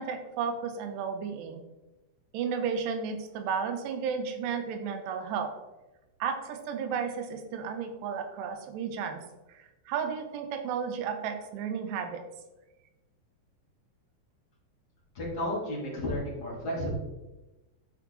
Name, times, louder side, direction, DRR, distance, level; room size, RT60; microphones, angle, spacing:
voice 1, 0.0-1.6 2.3-5.5 6.2-9.2 9.5-12.2, right 6 dB, 80° right, 6 dB, 3.0 m, -33 dB
voice 2, 15.1-16.9, left 1 dB, 25° left, -6 dB, 3.1 m, -32 dB
10.5 x 5.8 x 4.0 m, 1.0 s
omnidirectional pair, 5.2 m